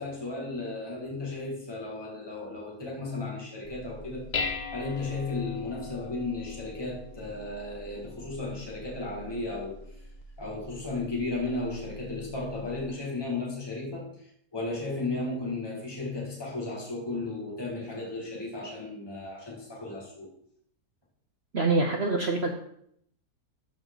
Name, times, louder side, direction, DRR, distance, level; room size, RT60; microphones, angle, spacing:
voice 1, 0.0-4.3 4.7-10.1 10.4-20.3, left 2 dB, 15° left, -4 dB, 2.1 m, -35 dB
Dishes pots and pans, 3.6-12.9, left 4 dB, 65° left, 0.4 m, -41 dB
voice 2, 21.5-22.5, right 3 dB, 50° right, 3 dB, 0.9 m, -25 dB
13.0 x 4.7 x 3.9 m, 0.69 s
omnidirectional pair, 1.8 m